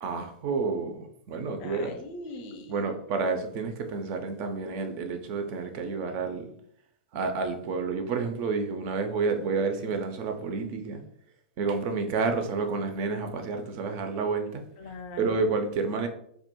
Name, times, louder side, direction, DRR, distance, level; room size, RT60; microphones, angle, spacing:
voice 1, 0.0-2.0 2.7-6.5 7.1-11.0 11.6-14.6 15.2-16.1, right 4 dB, 40° right, 6 dB, 0.4 m, -30 dB
voice 2, 1.6-3.0 14.8-15.6, left 2 dB, 45° left, 6 dB, 0.4 m, -41 dB
2.2 x 2.0 x 2.9 m, 0.68 s
hypercardioid pair, 105°, 5 cm